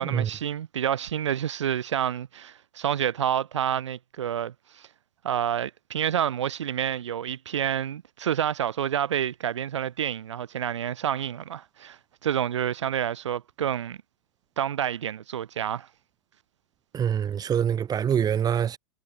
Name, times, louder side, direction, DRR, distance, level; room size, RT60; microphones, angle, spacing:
voice 1, 0.0-4.9 5.2-14.0 14.6-15.9, right 9 dB, 85° right, 4.2 m, -28 dB
voice 2, 16.9-18.8, right 8 dB, 25° right, 6.4 m, -25 dB
hypercardioid pair, 115°, 15 cm